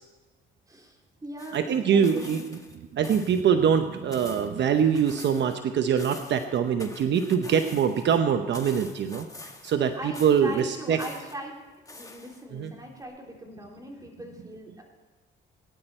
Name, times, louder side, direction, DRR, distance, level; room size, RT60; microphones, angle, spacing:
voice 1, 0.7-2.5 9.9-11.6 11.9-14.8, right 1 dB, 20° right, 0 dB, 3.5 m, -40 dB
sound 1, 1.4-2.8 3.0-3.5 3.8-5.6 5.8-8.2 8.5-9.9 10.1-11.3 11.9-12.6 13.0-13.1, left 2 dB, 15° left, 1.8 m, -46 dB
voice 2, 1.5-2.4 2.9-9.3 9.6-11.0 12.5-12.7, right 7 dB, 65° right, 7 dB, 0.9 m, -24 dB
19.0 x 11.0 x 4.4 m, 1.3 s
cardioid pair, 90°, 20 cm